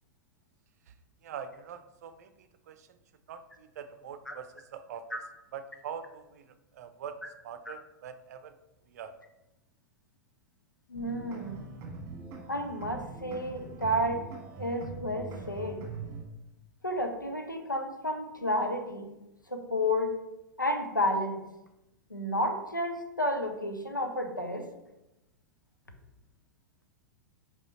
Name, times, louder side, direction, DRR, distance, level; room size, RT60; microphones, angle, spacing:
voice 1, 1.2-3.0 3.3-5.2 5.5-6.4 6.7-8.5 8.9-9.1, right 7 dB, 55° right, 10 dB, 0.6 m, -43 dB
voice 2, 10.9-11.6 12.5-14.3 14.6-15.8 16.8-19.1 19.5-20.2 20.6-21.4 22.1-24.7, left 1 dB, 90° left, 4 dB, 0.9 m, -31 dB
sound 1, 10.9-16.2, right 4 dB, 30° right, 1.5 m, -43 dB
5.5 x 4.8 x 4.2 m, 0.94 s
figure-of-eight pair, 95°, 10 cm